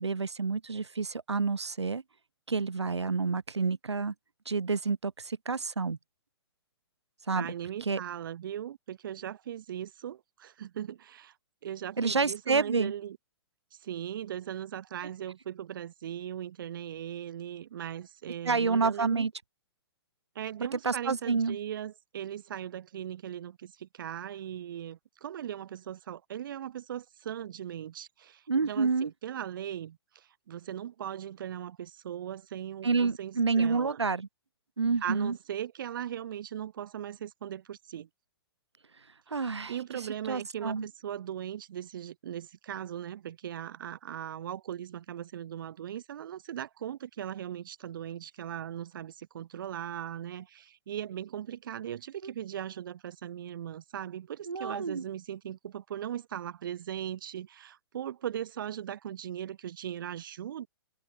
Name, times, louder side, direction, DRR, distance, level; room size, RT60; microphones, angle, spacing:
voice 1, 0.0-2.0 2.5-4.1 4.5-6.0 7.3-7.5 7.8-8.0 12.0-12.9 18.4-19.3 20.7-21.6 28.5-29.1 32.8-34.3 34.8-35.4 39.3-39.7 40.3-40.9 52.2-52.3 54.5-55.0, right 4 dB, 85° right, 0.6 m, -29 dB
voice 2, 7.3-11.3 11.6-13.2 13.8-19.3 20.3-34.0 35.0-38.1 39.7-60.7, right 10 dB, 50° right, 0.7 m, -39 dB
figure-of-eight pair, 120°, 14 cm